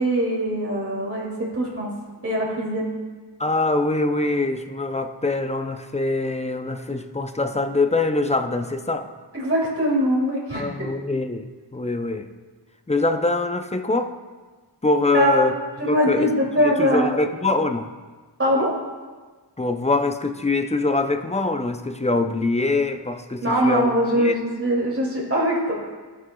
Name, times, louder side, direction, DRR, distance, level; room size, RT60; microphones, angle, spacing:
voice 1, 0.0-1.9 2.2-2.9 9.3-10.7 15.1-15.5 15.8-17.1 18.4-18.7 23.4-25.7, equal, 30° right, -5 dB, 2.6 m, -22 dB
voice 2, 3.4-9.1 10.5-12.3 12.9-14.1 14.8-15.5 15.8-17.9 19.6-23.9 24.1-24.4, left 2 dB, 15° left, 7 dB, 0.5 m, -24 dB
15.0 x 6.2 x 2.3 m, 1.4 s
wide cardioid pair, 60°, 43 cm